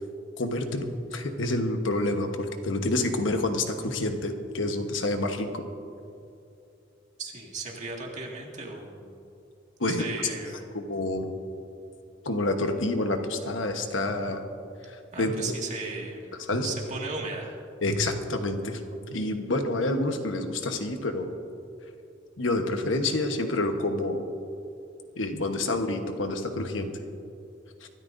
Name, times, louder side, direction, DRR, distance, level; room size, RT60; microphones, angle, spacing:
voice 1, 0.4-5.6 9.8-10.1 10.7-11.3 12.2-14.4 14.8-15.5 16.4-16.8 17.8-18.8 19.1-21.3 22.4-24.2 25.2-26.9 27.8-27.9, left 2 dB, 90° left, 5 dB, 1.2 m, -28 dB
voice 2, 7.2-9.2 9.9-10.7 15.1-17.6, right 3 dB, 40° right, -1 dB, 2.1 m, -36 dB
24.5 x 13.0 x 2.7 m, 2.6 s
head